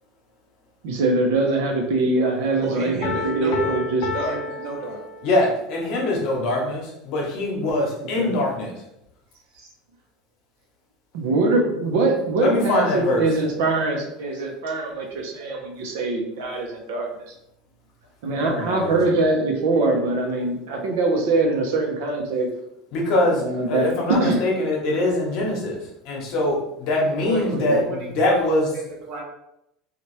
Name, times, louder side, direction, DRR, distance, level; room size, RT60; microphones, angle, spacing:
voice 1, 0.8-4.4 8.2-8.3 9.6-9.7 11.1-17.2 18.2-22.5 23.4-24.4 27.5-27.8, right 2 dB, 80° right, 1 dB, 0.7 m, -23 dB
voice 2, 2.6-3.8 4.1-5.0 27.2-29.2, right 2 dB, 50° right, -4 dB, 0.9 m, -31 dB
Piano, 3.0-5.6, left 4 dB, 75° left, 0.5 m, -31 dB
voice 3, 5.2-8.7 12.4-13.3 18.4-19.0 22.9-25.8 26.0-27.8 28.2-28.7, left 1 dB, 55° left, -1 dB, 0.9 m, -23 dB
3.0 x 2.4 x 3.1 m, 0.82 s
cardioid pair, 150°, 0 cm